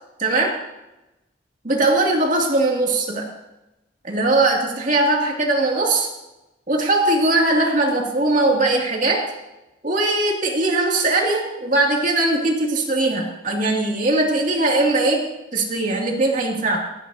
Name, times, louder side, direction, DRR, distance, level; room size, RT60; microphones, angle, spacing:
voice 1, 0.2-0.6 1.6-3.3 4.0-6.1 6.7-9.3 9.8-16.8, right 2 dB, 45° right, -1 dB, 2.6 m, -20 dB
29.5 x 9.9 x 2.8 m, 0.98 s
head